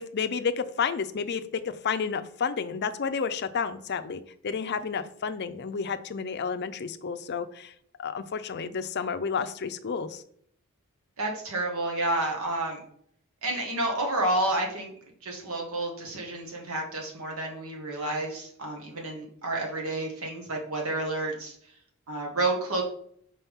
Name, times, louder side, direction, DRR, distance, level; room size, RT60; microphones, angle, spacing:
voice 1, 0.0-7.7 8.0-10.2, left 6 dB, 50° left, 11 dB, 0.5 m, -31 dB
voice 2, 11.2-12.8 13.4-14.9 15.2-21.5 22.1-22.8, right 2 dB, 75° right, 0 dB, 1.6 m, -30 dB
5.6 x 4.9 x 3.6 m, 0.63 s
head